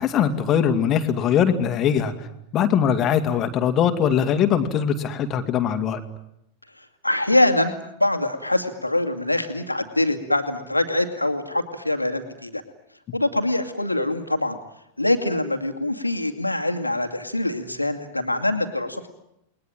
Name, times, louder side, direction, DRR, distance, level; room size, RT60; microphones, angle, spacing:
voice 1, 0.0-2.3 2.5-6.0, left 8 dB, 30° left, 7 dB, 2.5 m, -21 dB
voice 2, 6.8-7.7 8.0-12.6 13.1-14.6 15.0-19.1, left 1 dB, 85° left, 7 dB, 2.4 m, -24 dB
29.0 x 21.0 x 9.1 m, 0.79 s
figure-of-eight pair, 90°, 0 cm